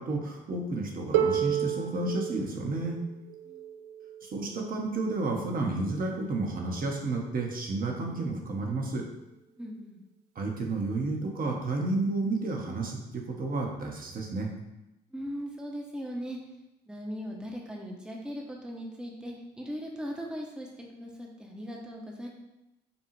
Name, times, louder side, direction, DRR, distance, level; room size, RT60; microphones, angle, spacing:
voice 1, 0.0-3.0 4.2-9.1 10.3-14.5, right 2 dB, 45° right, 1 dB, 1.1 m, -31 dB
Harp, 1.1-6.9 8.0-8.1, right 9 dB, 75° right, 0.4 m, -33 dB
voice 2, 9.6-10.0 15.1-16.4 16.9-22.3, equal, 5° right, -1 dB, 0.9 m, -39 dB
5.2 x 2.4 x 3.2 m, 0.94 s
hypercardioid pair, 50°, 21 cm